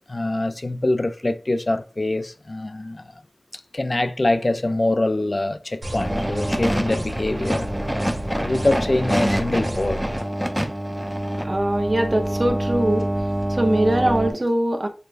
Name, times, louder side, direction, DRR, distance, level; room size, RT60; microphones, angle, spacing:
voice 1, 0.1-3.1 3.7-7.7 8.4-10.0, left 2 dB, 55° left, 0.3 m, -24 dB
sound 1, 5.8-10.2, right 1 dB, 75° right, 1.6 m, -31 dB
sound 2, 5.9-14.3, equal, 5° right, 0.6 m, -26 dB
voice 2, 11.4-13.1 13.5-14.9, right 1 dB, 50° right, 0.6 m, -22 dB
6.4 x 2.2 x 2.5 m
wide cardioid pair, 40°, 0 cm